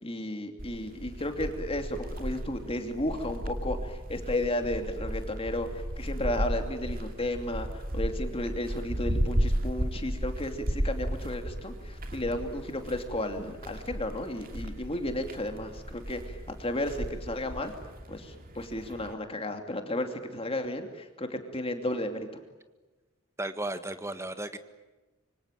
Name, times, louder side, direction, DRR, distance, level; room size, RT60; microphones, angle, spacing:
voice 1, 0.0-17.7 18.1-22.3, left 1 dB, 30° left, 6 dB, 2.7 m, -33 dB
sound 1, 0.6-19.1, equal, 45° right, 2.6 m, -35 dB
voice 2, 23.4-24.6, right 1 dB, 15° right, 9 dB, 1.6 m, -34 dB
26.0 x 25.0 x 9.1 m, 1.2 s
head